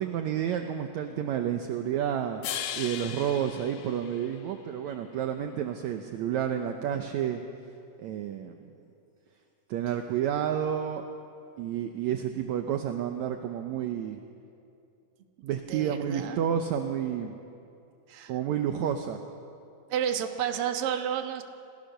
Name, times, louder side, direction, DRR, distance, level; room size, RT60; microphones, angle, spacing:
voice 1, 0.0-2.4 2.7-7.4 8.0-8.7 9.7-11.0 11.6-14.2 15.4-17.4 18.3-19.2, right 9 dB, 70° right, 6 dB, 1.9 m, -30 dB
sound 1, 2.4-4.8, left 10 dB, 80° left, 2.5 m, -38 dB
voice 2, 15.7-16.4 18.1-18.3 19.9-21.4, right 9 dB, 55° right, 5 dB, 1.8 m, -31 dB
27.5 x 16.5 x 6.6 m, 2.6 s
omnidirectional pair, 3.9 m